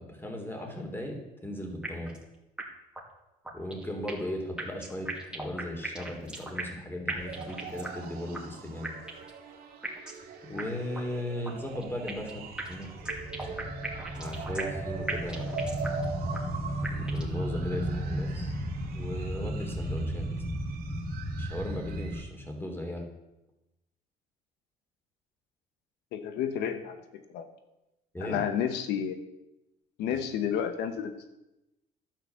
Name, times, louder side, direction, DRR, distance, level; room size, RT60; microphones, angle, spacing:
voice 1, 0.0-2.1 3.5-9.0 10.5-12.9 14.1-15.6 16.9-18.5 18.9-20.3 21.4-23.0 28.1-28.4, left 1 dB, 15° left, 3 dB, 3.3 m, -37 dB
sound 1, 1.8-2.3 2.6-2.7 3.0-3.1 3.5-4.3 4.6-6.8 7.1-8.1 8.3-8.4 8.8-9.4 9.8-10.3 10.6-10.7 11.0-11.1 11.4-12.3 12.6-14.8 15.1-16.1 16.3-16.4 16.8-17.4, right 2 dB, 5° right, 2.5 m, -37 dB
sound 2, 7.2-22.2, right 5 dB, 65° right, 2.2 m, -43 dB
sound 3, 11.7-22.2, right 1 dB, 40° left, 5.5 m, -35 dB
voice 2, 26.1-27.0 27.3-27.5 28.2-29.2 30.0-31.3, left 8 dB, 85° left, 8 dB, 1.1 m, -31 dB
11.5 x 9.1 x 7.0 m, 0.95 s
cardioid pair, 110°, 17 cm